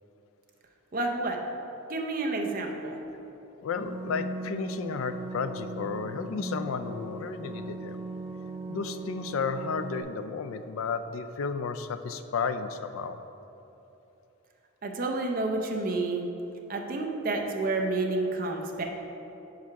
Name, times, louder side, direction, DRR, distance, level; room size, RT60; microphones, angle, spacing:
voice 1, 0.9-1.4 1.9-3.0 14.8-16.3 16.7-18.8, right 2 dB, 45° right, 2 dB, 0.6 m, -29 dB
voice 2, 3.6-8.0 8.7-13.2, left 5 dB, 90° left, 10 dB, 0.4 m, -33 dB
sound 1, 3.8-10.0, right 2 dB, 5° right, 0.8 m, -38 dB
4.8 x 4.6 x 5.8 m, 3.0 s
head